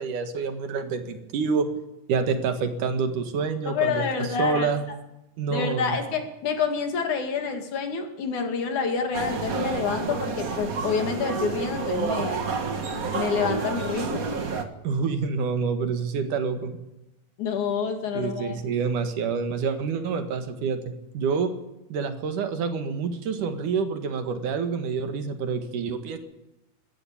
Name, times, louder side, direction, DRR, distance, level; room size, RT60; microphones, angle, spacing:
voice 1, 0.0-1.7 2.1-4.8 5.4-6.0 14.8-16.7 18.1-21.5 21.9-26.2, right 5 dB, 70° right, 7 dB, 3.2 m, -27 dB
voice 2, 3.7-4.7 5.5-12.4 13.1-14.3 17.4-18.6, left 5 dB, 65° left, 5 dB, 3.6 m, -28 dB
sound 1, 9.1-14.6, right 4 dB, 45° right, 1.2 m, -29 dB
22.5 x 14.0 x 8.6 m, 0.94 s
omnidirectional pair, 3.7 m